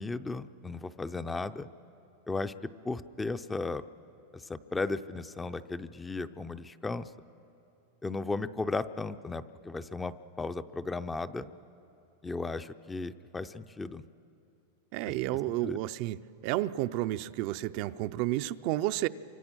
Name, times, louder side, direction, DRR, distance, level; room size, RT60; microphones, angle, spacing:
voice 1, 0.0-1.7 2.3-3.8 4.3-7.1 8.0-11.5 12.2-14.0 15.6-15.8, left 3 dB, 10° left, 12 dB, 0.5 m, -35 dB
voice 2, 14.9-16.2 16.4-19.1, right 16 dB, 50° right, 12 dB, 0.5 m, -31 dB
27.5 x 25.0 x 6.2 m, 2.7 s
supercardioid pair, 140°, 0 cm